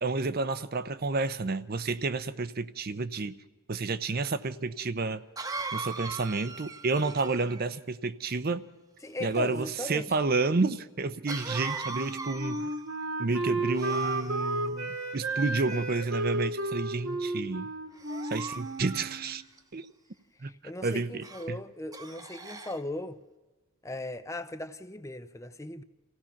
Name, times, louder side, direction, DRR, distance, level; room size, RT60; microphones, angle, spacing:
voice 1, 0.0-3.3 3.7-5.2 5.7-8.6 9.2-12.7 13.2-17.7 18.2-19.4 19.7-19.9 20.4-20.5 20.8-21.6, right 3 dB, 45° right, 0.6 m, -30 dB
Cough, 4.3-4.4 5.4-7.7 11.3-13.0 13.7-14.6 15.4-16.1 16.7-17.0 18.0-19.6 21.2-21.5 21.9-22.8, right 3 dB, 15° right, 1.0 m, -40 dB
voice 2, 9.0-10.2 20.4-23.2 23.8-25.8, left 1 dB, 15° left, 0.6 m, -38 dB
Wind instrument woodwind instrument, 11.9-19.4, right 2 dB, 60° right, 1.6 m, -33 dB
27.0 x 16.5 x 5.9 m
head